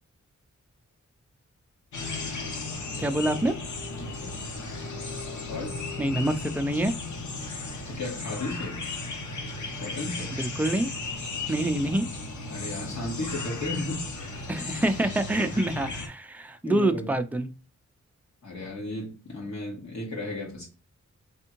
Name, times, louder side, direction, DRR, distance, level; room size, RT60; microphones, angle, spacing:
sound 1, 1.9-16.1, left 3 dB, 90° left, 0.9 m, -35 dB
voice 1, 3.0-3.5 6.0-6.9 10.3-10.9 11.5-12.1 14.5-17.5, right 1 dB, 5° right, 0.3 m, -26 dB
voice 2, 3.9-4.4 5.4-5.8 7.9-8.8 9.8-10.3 12.5-14.0 16.6-17.1 18.4-20.7, left 2 dB, 75° left, 2.1 m, -34 dB
3.5 x 3.4 x 2.9 m
wide cardioid pair, 165°, 29 cm